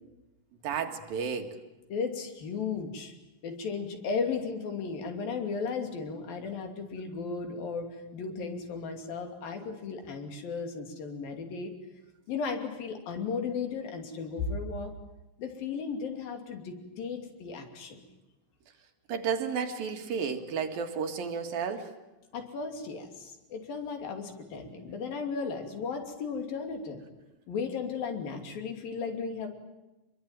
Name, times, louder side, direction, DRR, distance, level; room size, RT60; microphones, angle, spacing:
voice 1, 0.6-1.5 19.1-21.9, right 6 dB, 85° right, 5 dB, 3.8 m, -32 dB
voice 2, 1.9-3.1 3.4-11.7 12.3-14.9 15.4-18.0 22.3-27.0 27.5-29.5, left 5 dB, 85° left, 5 dB, 4.6 m, -35 dB
26.0 x 22.5 x 9.0 m, 1.0 s
omnidirectional pair, 4.0 m